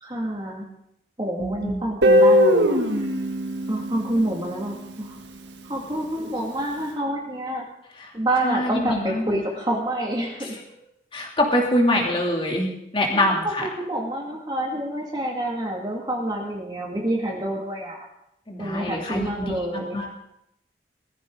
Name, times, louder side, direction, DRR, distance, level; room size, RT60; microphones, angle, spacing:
voice 1, 0.0-0.7 1.2-3.1 3.7-5.2 5.6-7.6 8.1-10.6 12.0-12.2 13.1-18.1 18.6-20.1, right 1 dB, 25° right, -1 dB, 2.4 m, -28 dB
voice 2, 1.4-1.8 8.4-9.4 11.1-13.6 18.5-20.1, left 1 dB, 30° left, -1 dB, 3.0 m, -24 dB
Guitar, 2.0-5.0, equal, 80° right, 1.5 m, -20 dB
19.5 x 14.5 x 4.0 m, 0.81 s
head